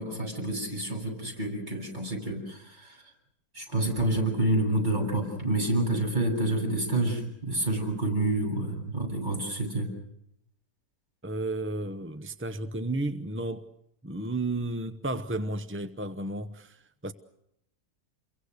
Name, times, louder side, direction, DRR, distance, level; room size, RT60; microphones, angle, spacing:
voice 1, 0.0-3.0 3.5-9.9, right 1 dB, 30° right, 8.1 m, -28 dB
voice 2, 11.2-13.7 14.0-17.1, right 2 dB, 10° right, 0.6 m, -33 dB
29.5 x 23.5 x 6.6 m
omnidirectional pair, 1.7 m